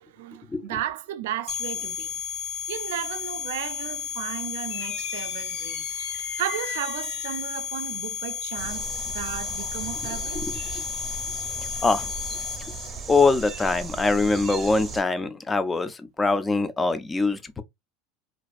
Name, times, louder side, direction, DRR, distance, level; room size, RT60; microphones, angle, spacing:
voice 1, 0.0-2.2 2.7-5.9 6.4-10.4, right 12 dB, 85° right, 0.3 m, -34 dB
sound 1, 1.5-12.9, left 8 dB, 45° left, 0.7 m, -33 dB
sound 2, 4.7-7.6, left 6 dB, 80° left, 0.8 m, -39 dB
sound 3, 8.6-15.0, right 4 dB, 25° right, 0.6 m, -37 dB
voice 2, 13.1-17.6, left 3 dB, 15° left, 0.3 m, -23 dB
2.5 x 2.3 x 2.3 m
supercardioid pair, 135°, 0 cm